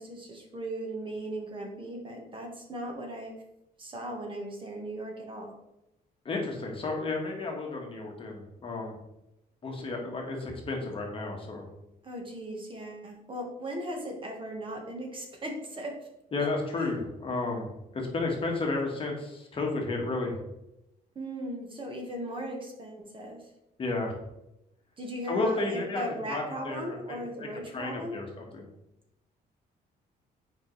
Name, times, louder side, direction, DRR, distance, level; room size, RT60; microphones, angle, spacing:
voice 1, 0.0-3.4 3.8-5.5 12.0-15.9 16.7-16.9 21.1-23.5 25.0-28.2, right 1 dB, 30° right, 1 dB, 1.3 m, -38 dB
voice 2, 6.2-8.9 9.6-11.7 16.3-17.7 17.9-20.4 23.8-24.1 25.3-26.9 27.7-28.6, left 3 dB, 35° left, 0 dB, 1.4 m, -32 dB
7.4 x 4.9 x 3.2 m, 0.88 s
cardioid pair, 140°, 17 cm